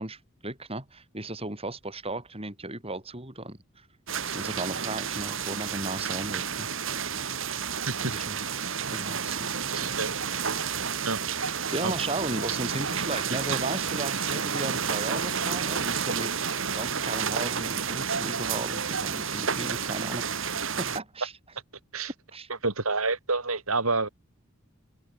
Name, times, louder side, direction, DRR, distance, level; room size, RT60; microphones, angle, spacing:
voice 1, 0.0-3.9 4.3-6.7 8.0-8.6 8.9-10.0 11.7-16.3 16.7-20.5 20.8-21.3 22.3-22.5, right 2 dB, 25° right, 6.6 m, -35 dB
sound 1, 4.1-21.0, right 6 dB, 65° right, 2.8 m, -30 dB
voice 2, 9.7-10.1 11.1-11.2 11.8-11.9 21.9-22.1 22.6-24.1, right 3 dB, 80° right, 5.5 m, -28 dB
open air
head